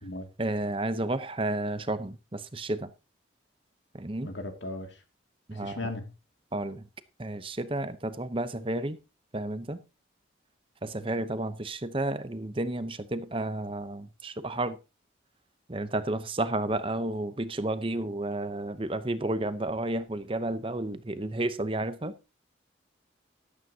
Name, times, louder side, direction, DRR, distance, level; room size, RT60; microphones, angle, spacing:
voice 1, 0.4-2.9 3.9-4.3 5.5-5.8 6.5-6.8 7.2-9.0 9.3-9.8 10.8-14.8 15.7-22.1, right 2 dB, 30° right, 0.8 m, -31 dB
voice 2, 4.2-5.0 5.5-6.1, left 2 dB, 70° left, 2.3 m, -37 dB
14.0 x 12.0 x 2.8 m
head